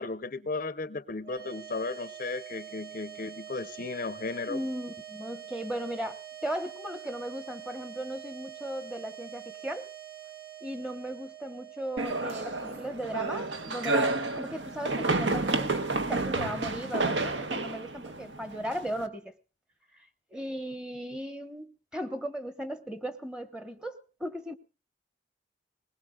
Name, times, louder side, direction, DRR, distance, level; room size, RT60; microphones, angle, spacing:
voice 1, 0.0-4.6 17.5-17.7, left 3 dB, 45° left, 0.6 m, -35 dB
sound 1, 1.2-15.6, right 10 dB, 50° right, 1.8 m, -46 dB
voice 2, 4.5-9.9 10.6-19.3 19.9-24.5, equal, 5° right, 1.0 m, -37 dB
sound 2, 12.0-19.0, right 2 dB, 65° right, 1.1 m, -30 dB
20.5 x 20.5 x 2.3 m
head